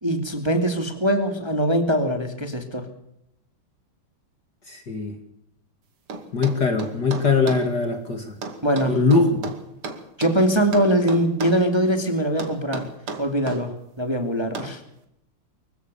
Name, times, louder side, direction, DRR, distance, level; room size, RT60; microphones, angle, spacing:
voice 1, 0.0-2.9 8.6-9.0 10.2-12.9 13.2-14.8, right 1 dB, 10° right, 6 dB, 2.4 m, -22 dB
voice 2, 4.7-5.1 6.3-8.4 8.9-9.3, left 4 dB, 50° left, 5 dB, 2.9 m, -21 dB
sound 1, 6.1-7.7 8.4-10.4 10.7-11.7 12.4-13.6 14.5-14.8, right 4 dB, 80° right, 3.3 m, -33 dB
25.0 x 15.5 x 7.0 m, 0.78 s
omnidirectional pair, 2.4 m